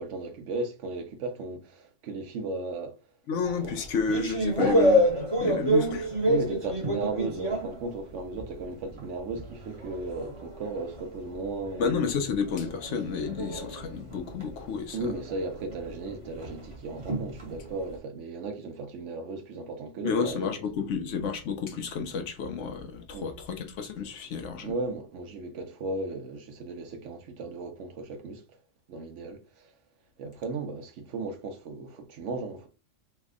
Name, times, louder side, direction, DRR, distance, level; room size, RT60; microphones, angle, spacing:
voice 1, 0.0-3.0 3.6-3.7 4.6-4.8 6.2-11.9 14.9-20.5 23.1-23.3 24.6-28.4 28.9-29.7 30.2-32.7, right 3 dB, 70° right, 1.0 m, -35 dB
voice 2, 3.3-5.0 5.4-6.2 11.8-15.1 20.0-24.7, left 5 dB, 70° left, 1.0 m, -31 dB
sound 1, 3.4-8.6 9.0-17.9, right 1 dB, 25° right, 1.0 m, -29 dB
3.3 x 2.1 x 3.6 m
omnidirectional pair, 1.3 m